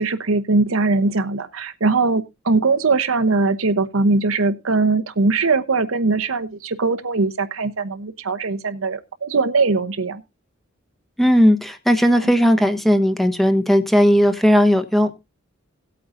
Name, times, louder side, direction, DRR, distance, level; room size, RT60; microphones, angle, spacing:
voice 1, 0.0-10.2 12.2-12.3, right 3 dB, 80° right, 0.9 m, -20 dB
voice 2, 11.2-15.1, equal, ahead, 1.0 m, -16 dB
17.5 x 8.5 x 2.6 m
head